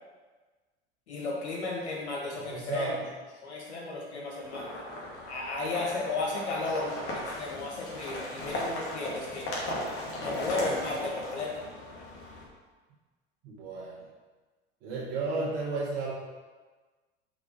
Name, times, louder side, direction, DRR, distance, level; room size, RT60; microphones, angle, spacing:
voice 1, 1.1-3.0 3.4-4.7 5.3-9.5 10.2-11.5, left 3 dB, 75° left, -3 dB, 1.7 m, -34 dB
voice 2, 2.3-2.9 13.4-13.9 14.8-16.1, right 3 dB, 60° right, -6 dB, 1.5 m, -33 dB
sound 1, 4.4-12.4, left 1 dB, 40° left, 1.8 m, -37 dB
5.0 x 3.7 x 5.3 m, 1.3 s
figure-of-eight pair, 75°, 34 cm